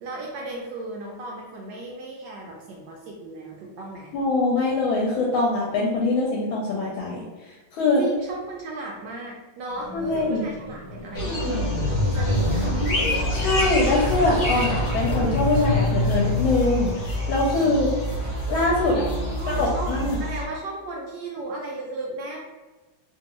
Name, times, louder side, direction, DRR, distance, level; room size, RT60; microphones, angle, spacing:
voice 1, 0.0-4.1 8.0-11.7 12.0-12.7 18.8-22.4, right 2 dB, 75° right, -2 dB, 1.0 m, -35 dB
voice 2, 4.1-7.2 7.5-8.0 9.9-10.4 13.3-17.9 18.5-19.0 19.5-20.2, left 2 dB, 80° left, -3 dB, 1.3 m, -23 dB
sound 1, 9.7-16.6, left 3 dB, 20° left, 0.3 m, -30 dB
sound 2, 11.1-20.4, equal, 55° left, 1.0 m, -27 dB
sound 3, 12.1-20.1, left 1 dB, 50° right, 0.6 m, -33 dB
3.4 x 2.3 x 2.9 m, 1.2 s
omnidirectional pair, 2.3 m